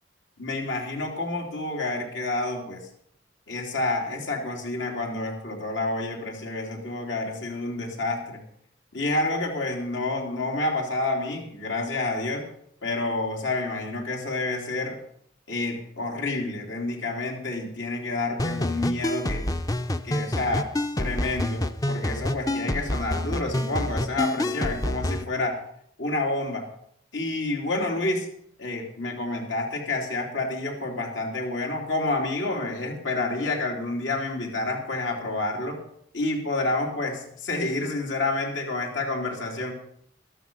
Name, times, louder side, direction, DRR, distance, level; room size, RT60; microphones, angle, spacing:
voice 1, 0.4-2.8 3.5-8.4 8.9-12.4 12.8-15.0 15.5-19.4 20.0-20.7 21.0-25.6 26.0-26.7 27.1-28.3 28.6-35.8 36.1-39.8, left 2 dB, 80° left, 0 dB, 3.3 m, -29 dB
sound 1, 18.4-25.2, left 1 dB, 20° left, 0.6 m, -28 dB
13.0 x 12.5 x 5.5 m, 0.68 s
head